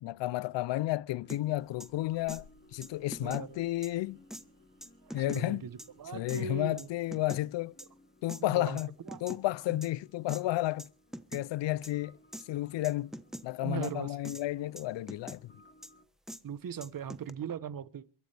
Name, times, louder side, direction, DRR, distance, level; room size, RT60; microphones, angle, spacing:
voice 1, 0.0-2.4 2.7-4.2 5.1-5.6 6.1-7.7 8.2-8.9 9.2-10.9 11.3-12.2 12.5-13.2 13.4-15.5, left 16 dB, 70° left, 0.6 m, -32 dB
sound 1, 1.2-16.1, left 1 dB, 25° left, 2.1 m, -62 dB
sound 2, 1.3-1.4 1.8-1.9 2.3-2.4 2.8-3.5 3.8-3.9 4.3-4.4 4.8-5.4 5.8-5.9 6.3-6.4 6.8-7.4 7.8-7.9 8.3-8.4 8.8-9.4 9.8-9.9 10.3-10.4 10.8-10.9 11.1-11.4 11.8-11.9 12.3-12.4 12.8-13.4 13.8-13.9 14.2-14.4 14.8-15.4 15.8-15.9 16.3-16.4 16.8-17.3, equal, ahead, 1.0 m, -43 dB
sound 3, 1.4-7.5, equal, 75° right, 7.5 m, -64 dB
voice 2, 3.2-3.6 5.3-5.7 6.0-6.9 8.5-8.8 9.0-9.2 9.7-9.8 13.6-14.2 16.4-18.1, right 8 dB, 50° right, 1.0 m, -39 dB
23.0 x 13.5 x 3.4 m
cardioid pair, 85°, 45 cm